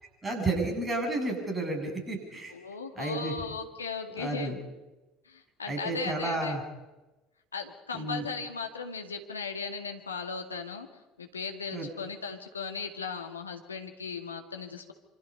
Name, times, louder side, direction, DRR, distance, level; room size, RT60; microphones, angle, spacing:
voice 1, 0.2-2.5 2.9-3.3 4.2-4.6 5.7-6.6 7.9-8.2 11.7-11.9, right 2 dB, 15° right, 2 dB, 8.0 m, -31 dB
voice 2, 2.5-4.5 5.3-6.6 7.5-10.9 11.2-14.9, left 5 dB, 80° left, 4 dB, 2.1 m, -37 dB
26.5 x 25.5 x 5.5 m, 1.1 s
figure-of-eight pair, 65°, 0 cm